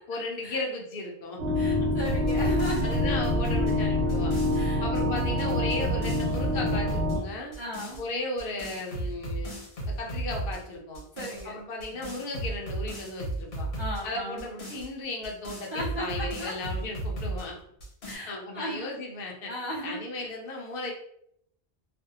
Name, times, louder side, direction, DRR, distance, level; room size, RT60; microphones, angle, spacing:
voice 1, 0.1-1.6 2.8-4.3 4.8-7.5 8.0-9.5 9.9-11.0 11.5-13.7 14.0-17.6 18.3-19.5 19.8-20.9, left 2 dB, 65° left, 0 dB, 0.7 m, -35 dB
sound 1, 1.4-7.2, left 1 dB, 80° right, 0.9 m, -26 dB
voice 2, 1.5-2.9 4.5-4.9 7.6-8.0 11.1-11.5 13.8-14.4 15.7-16.5 18.0-18.9 19.5-20.0, equal, 45° right, -6 dB, 0.4 m, -35 dB
sound 2, 2.0-4.6 4.9-7.2 7.5-8.0 8.4-10.6 10.9-11.4 11.8-14.0 14.4-17.4 17.8-18.1, right 2 dB, 85° left, 1.2 m, -34 dB
2.5 x 2.0 x 2.7 m, 0.74 s
omnidirectional pair, 1.0 m